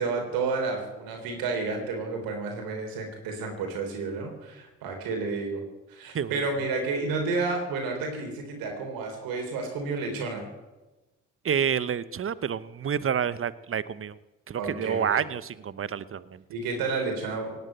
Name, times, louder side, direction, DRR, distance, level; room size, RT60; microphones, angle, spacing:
voice 1, 0.0-5.6 5.9-10.5 14.6-15.3 16.5-17.6, right 4 dB, 75° right, 3 dB, 3.8 m, -31 dB
voice 2, 11.4-14.2 14.5-16.4, right 8 dB, 35° right, 17 dB, 1.0 m, -29 dB
18.0 x 8.1 x 9.2 m, 1.1 s
hypercardioid pair, 50°, 35 cm